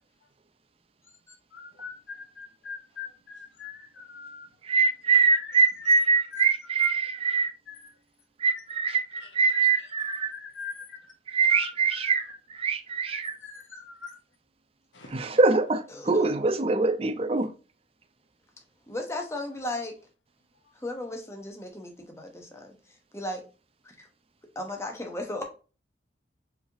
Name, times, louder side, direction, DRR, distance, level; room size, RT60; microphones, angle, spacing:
voice 1, 1.5-4.5 5.3-5.9 6.3-6.5 6.8-6.9 7.7-7.9 8.8-11.1 11.5-12.4 13.1-14.2 14.9-15.4 17.4-17.5, left 6 dB, 80° left, 1.2 m, -42 dB
voice 2, 4.7-7.5 8.4-10.3 11.3-12.2 12.6-13.3 15.1-17.5, right 4 dB, 30° right, 0.5 m, -23 dB
voice 3, 15.9-16.6 18.9-19.9 20.7-22.7 23.1-23.4 23.8-24.1 24.5-25.4, left 1 dB, 15° left, 0.9 m, -36 dB
4.7 x 3.4 x 2.7 m
head